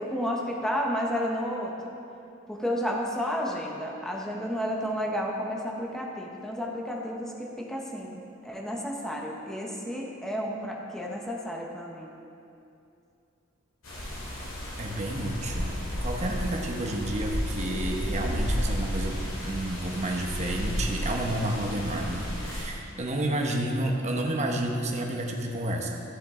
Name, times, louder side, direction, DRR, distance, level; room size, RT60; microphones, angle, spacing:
voice 1, 0.0-1.7 2.5-12.1, equal, 5° left, -2 dB, 1.0 m, -31 dB
sound 1, 13.8-22.6, equal, 75° left, 2.4 m, -32 dB
voice 2, 14.8-26.0, right 1 dB, 35° right, 1 dB, 1.0 m, -30 dB
14.0 x 7.4 x 3.8 m, 2.6 s
head